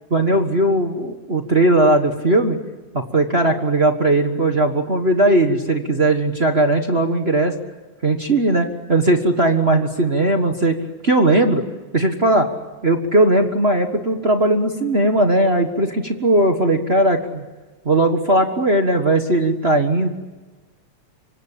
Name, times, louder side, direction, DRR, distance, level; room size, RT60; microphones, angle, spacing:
voice 1, 0.1-2.6 2.9-7.5 8.0-10.8 11.0-11.6 11.9-12.5 12.8-17.4 17.8-20.1, right 2 dB, 35° right, 4 dB, 1.0 m, -18 dB
25.5 x 25.0 x 8.6 m, 1.2 s
omnidirectional pair, 3.4 m